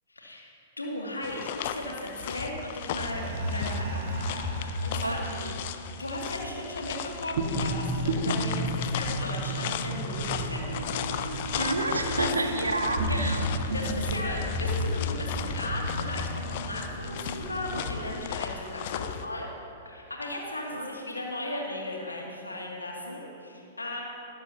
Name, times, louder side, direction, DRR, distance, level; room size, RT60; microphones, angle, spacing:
voice 1, 0.1-4.5 4.8-5.2 6.0-11.0 12.2-12.3 13.1-19.5 19.8-24.0, left 1 dB, 85° left, -2 dB, 2.4 m, -36 dB
sound 1, 1.2-19.3, left 9 dB, 50° left, 0.6 m, -36 dB
sound 2, 2.9-18.3, equal, 55° right, 1.8 m, -33 dB
voice 2, 5.0-5.5 11.5-13.4 20.6-20.9, right 2 dB, 85° right, 5 dB, 1.2 m, -30 dB
20.0 x 11.5 x 2.9 m, 2.6 s
figure-of-eight pair, 105°, 0 cm